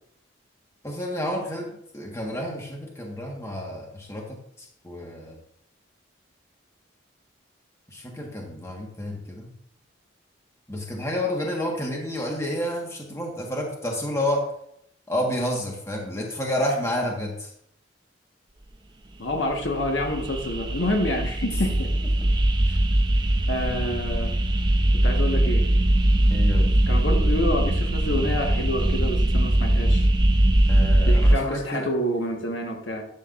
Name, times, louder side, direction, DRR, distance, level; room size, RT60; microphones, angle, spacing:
voice 1, 0.8-4.4 4.8-5.4 7.9-9.5 10.7-14.4 15.1-17.5 26.3-26.7 30.7-31.9, left 1 dB, 15° left, -1 dB, 1.5 m, -29 dB
voice 2, 19.2-21.9 22.6-22.8 23.5-24.3 24.9-25.7 26.9-30.1 31.0-33.0, left 1 dB, 70° left, 2 dB, 1.5 m, -28 dB
sound 1, 19.3-31.4, right 1 dB, 20° right, 0.6 m, -21 dB
11.5 x 7.7 x 2.6 m, 0.73 s
head